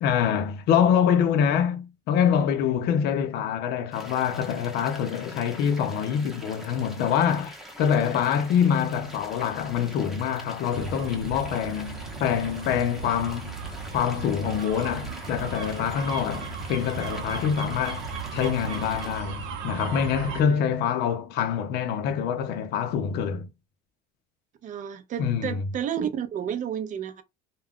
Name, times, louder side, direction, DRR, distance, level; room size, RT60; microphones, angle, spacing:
voice 1, 0.0-13.6 13.9-23.5 25.2-25.6, left 8 dB, 55° left, 0.5 m, -25 dB
sound 1, 3.9-19.2, equal, ahead, 0.7 m, -44 dB
sound 2, 10.7-20.4, right 5 dB, 70° right, 0.8 m, -36 dB
voice 2, 24.6-27.2, right 9 dB, 40° right, 0.5 m, -31 dB
2.3 x 2.2 x 3.5 m
cardioid pair, 130°, 20 cm